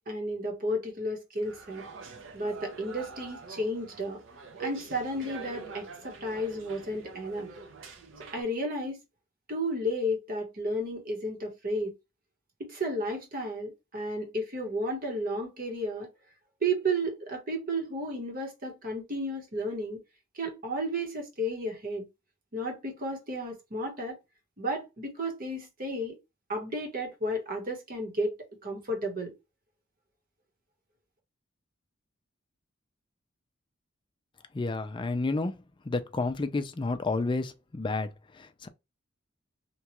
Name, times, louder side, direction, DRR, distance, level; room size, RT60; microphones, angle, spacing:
voice 1, 0.1-1.9 2.3-4.2 4.6-7.5 8.2-9.0 9.5-11.9 12.6-16.1 16.6-20.0 20.3-22.1 22.5-24.2 24.6-26.2 26.5-28.3 28.6-29.3, right 1 dB, 45° right, 1.1 m, -33 dB
sound 1, 1.4-8.4, right 5 dB, 70° right, 0.7 m, -45 dB
voice 2, 34.5-35.6 35.9-38.1 38.4-38.7, left 3 dB, 25° left, 0.4 m, -30 dB
3.0 x 2.3 x 2.9 m
head